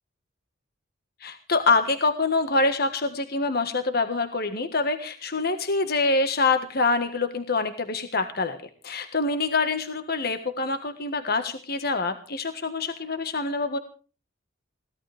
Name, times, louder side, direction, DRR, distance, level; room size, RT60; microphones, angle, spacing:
voice 1, 1.2-8.6 8.8-13.8, left 3 dB, 50° left, 8 dB, 1.6 m, -25 dB
22.5 x 17.5 x 3.5 m, 0.38 s
head